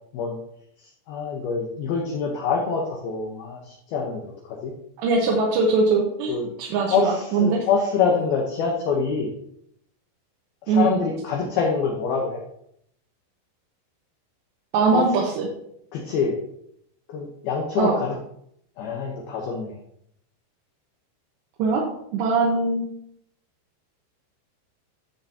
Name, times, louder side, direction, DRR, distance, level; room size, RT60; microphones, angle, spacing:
voice 1, 1.1-4.7 6.3-6.4 6.9-9.3 10.7-12.4 14.9-15.1 15.9-16.4 17.1-18.2 18.8-19.8, left 5 dB, 70° left, 0 dB, 2.4 m, -25 dB
voice 2, 5.0-7.6 10.7-10.9 14.7-15.5 17.8-17.9 21.6-21.8 22.1-22.8, right 4 dB, 75° right, -3 dB, 3.2 m, -21 dB
13.0 x 6.7 x 2.8 m, 0.72 s
omnidirectional pair, 5.4 m